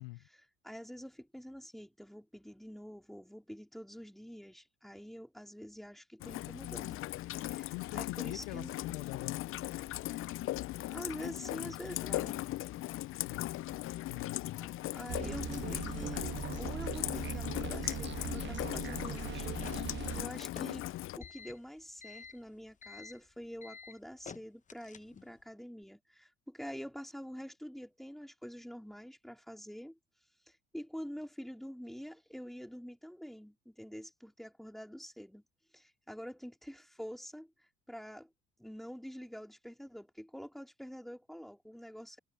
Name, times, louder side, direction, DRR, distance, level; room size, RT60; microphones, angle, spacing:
voice 1, 0.3-7.0 7.4-8.7 10.9-12.4 14.6-16.3 16.5-19.5 20.1-20.9 21.2-30.0 30.5-35.4 35.7-37.5 37.9-38.3 38.6-42.2, equal, ahead, 3.7 m, -46 dB
Rain, 6.2-21.2, left 16 dB, 45° left, 0.5 m, -38 dB
voice 2, 7.7-9.6 13.2-13.5 14.1-14.4, left 25 dB, 80° left, 0.9 m, -44 dB
sound 1, 15.1-20.2, right 9 dB, 40° right, 1.3 m, -40 dB
sound 2, 19.1-25.4, left 6 dB, 25° left, 0.9 m, -51 dB
hypercardioid pair, 75°, 29 cm